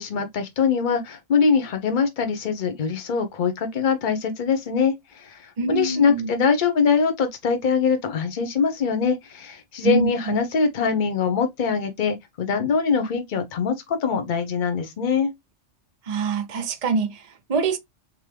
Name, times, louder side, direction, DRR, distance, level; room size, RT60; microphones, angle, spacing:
voice 1, 0.0-15.3, left 5 dB, 45° left, 1.0 m, -23 dB
voice 2, 5.6-6.3 9.8-10.4 16.1-17.8, right 4 dB, 45° right, 0.5 m, -25 dB
3.7 x 3.0 x 3.3 m
omnidirectional pair, 1.3 m